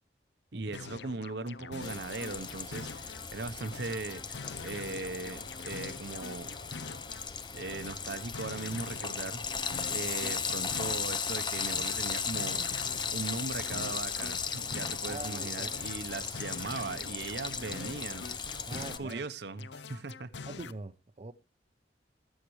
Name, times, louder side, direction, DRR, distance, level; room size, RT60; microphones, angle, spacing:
voice 1, 0.5-6.5 7.5-20.3, right 3 dB, 65° right, 0.9 m, -39 dB
sound 1, 0.7-3.3 3.6-7.3 7.6-11.3 11.6-15.3 15.6-19.3 19.6-20.7, left 4 dB, 70° left, 0.6 m, -45 dB
Frying (food), 1.8-19.0, left 6 dB, 25° left, 0.7 m, -36 dB
voice 2, 15.1-15.7 18.7-19.2 20.5-21.3, right 2 dB, 35° right, 0.6 m, -42 dB
21.5 x 7.4 x 3.2 m
head